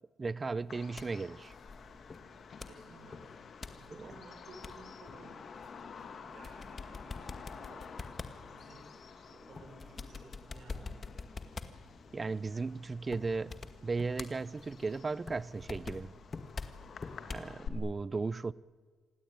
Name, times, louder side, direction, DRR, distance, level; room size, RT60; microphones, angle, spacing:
voice 1, 0.2-1.5 3.9-4.1 12.1-16.1 17.3-18.5, right 4 dB, 30° right, 0.7 m, -36 dB
sound 1, 0.6-17.5, left 4 dB, 35° left, 1.9 m, -47 dB
Bird vocalization bird call bird song, 0.7-17.7, left 6 dB, 50° left, 2.5 m, -51 dB
voice 2, 2.6-7.9 8.4-11.3, right 3 dB, 60° right, 5.7 m, -56 dB
26.5 x 17.0 x 9.7 m
cardioid pair, 90°, 0 cm